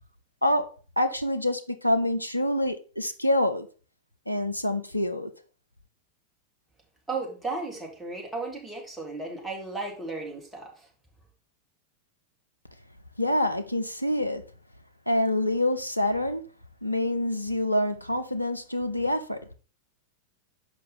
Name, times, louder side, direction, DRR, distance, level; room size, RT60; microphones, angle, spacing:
voice 1, 0.4-3.7 4.3-5.3 13.2-14.4 15.1-16.4 16.8-19.4, left 1 dB, 90° left, 0.6 m, -26 dB
voice 2, 7.1-10.9, right 3 dB, 5° right, 2.2 m, -35 dB
6.9 x 5.2 x 4.1 m
figure-of-eight pair, 90°, 0 cm